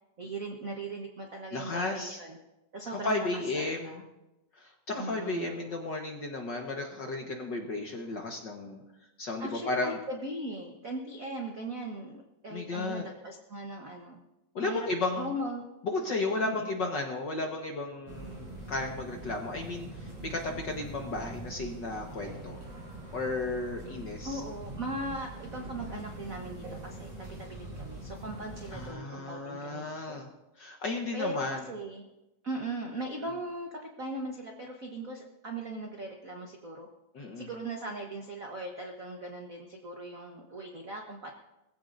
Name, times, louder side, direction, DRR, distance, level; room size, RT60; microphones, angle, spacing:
voice 1, 0.2-2.4 2.7-3.3 3.5-4.0 5.0-5.7 9.4-14.2 14.6-14.9 15.2-15.6 16.4-16.7 24.2-27.1 27.4-30.2 31.1-32.0 32.4-36.9 37.4-41.3, right 2 dB, 70° right, 1 dB, 0.8 m, -39 dB
voice 2, 1.5-2.2 2.9-4.0 4.5-8.8 9.2-10.0 12.5-13.0 14.5-15.3 15.8-22.6 23.1-24.4 28.7-30.3 30.6-31.7 37.1-37.5, left 2 dB, 55° left, 2 dB, 1.4 m, -34 dB
sound 1, 18.1-28.9, right 2 dB, 90° right, 7.8 m, -43 dB
21.0 x 15.5 x 2.6 m, 0.95 s
omnidirectional pair, 3.4 m